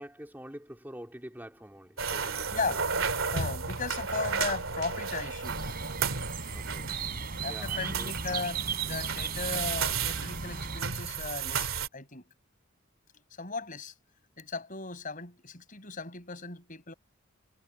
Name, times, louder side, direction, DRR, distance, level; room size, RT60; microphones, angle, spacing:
voice 1, 0.0-2.8 6.5-7.0 7.5-8.1 9.2-9.5, equal, 10° right, 3.1 m, -46 dB
sound 1, 2.0-11.9, right 5 dB, 90° right, 2.7 m, -33 dB
voice 2, 3.3-5.8 7.4-12.2 13.4-13.9 14.4-16.9, left 4 dB, 40° left, 5.5 m, -37 dB
sound 2, 5.4-10.8, right 5 dB, 50° right, 3.2 m, -36 dB
head